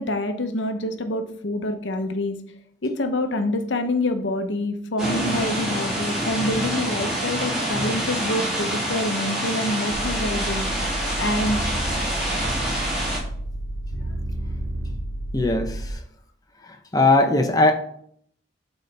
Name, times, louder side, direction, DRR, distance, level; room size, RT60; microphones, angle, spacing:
voice 1, 0.0-2.4 2.8-11.7, left 1 dB, 80° left, 7 dB, 0.8 m, -26 dB
sound 1, 5.0-13.2, right 1 dB, 5° right, 3.5 m, -26 dB
sound 2, 9.9-15.9, right 1 dB, 80° right, 2.0 m, -31 dB
voice 2, 15.3-15.7 16.9-17.7, left 2 dB, 20° left, 4 dB, 0.7 m, -18 dB
11.5 x 4.1 x 3.4 m, 0.66 s
head